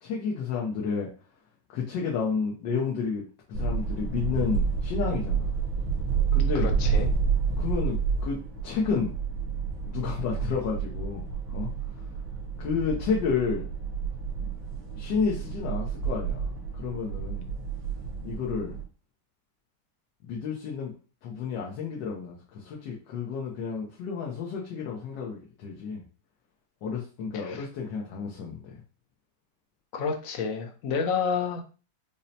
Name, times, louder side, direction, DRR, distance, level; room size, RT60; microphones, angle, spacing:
voice 1, 0.0-1.1 1.7-3.2 3.5-5.5 6.3-6.7 7.6-9.1 9.9-11.2 11.5-11.7 12.6-13.6 14.4-14.5 14.9-17.5 18.2-18.7 20.2-20.9 21.2-26.0 26.8-28.7, left 5 dB, 85° left, -3 dB, 1.4 m, -31 dB
sound 1, 3.5-18.8, right 6 dB, 75° right, 1.8 m, -30 dB
voice 2, 6.5-7.1 27.4-27.7 29.9-31.6, left 5 dB, 65° left, 5 dB, 0.9 m, -29 dB
5.4 x 2.1 x 2.7 m, 0.35 s
omnidirectional pair, 1.9 m